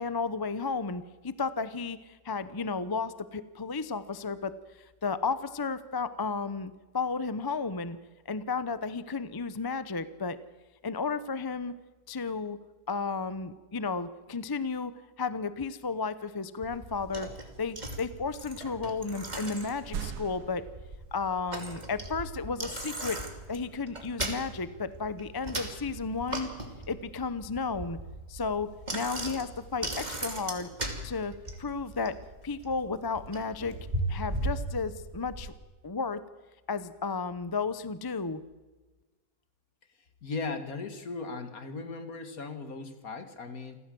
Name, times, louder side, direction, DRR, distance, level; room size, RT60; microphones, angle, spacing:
voice 1, 0.0-4.5 5.0-8.0 8.3-10.4 10.8-11.7 12.1-12.6 12.9-14.9 15.2-17.3 17.6-20.7 21.1-23.2 23.5-26.5 26.9-28.0 28.3-30.7 31.0-32.2 32.4-33.8 34.1-35.5 35.8-36.2 36.7-38.4, left 4 dB, 20° left, 14 dB, 0.6 m, -33 dB
Bicycle, 16.6-35.5, right 1 dB, 25° right, 2.8 m, -38 dB
sound 1, 19.6-21.2 23.8-23.9, right 7 dB, 85° right, 1.7 m, -39 dB
voice 2, 40.2-43.8, left 3 dB, 65° left, 8 dB, 2.3 m, -37 dB
27.5 x 15.0 x 7.7 m, 1.2 s
omnidirectional pair, 1.7 m